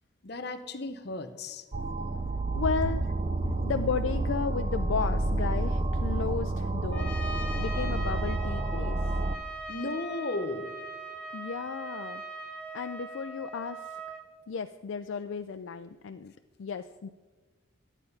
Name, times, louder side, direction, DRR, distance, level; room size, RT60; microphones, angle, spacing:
voice 1, 0.2-1.6 3.4-3.5 9.7-10.7, left 2 dB, 50° left, 9 dB, 0.8 m, -35 dB
sound 1, 1.7-9.4, right 2 dB, 30° right, 0.5 m, -29 dB
voice 2, 2.5-3.0 3.6-7.1 7.6-9.0 11.3-12.2 12.7-14.0 14.5-16.3 16.6-17.1, left 5 dB, 70° left, 8 dB, 0.4 m, -34 dB
Trumpet, 6.9-14.3, right 2 dB, 5° left, 1.0 m, -40 dB
11.5 x 9.1 x 5.5 m, 1.3 s
head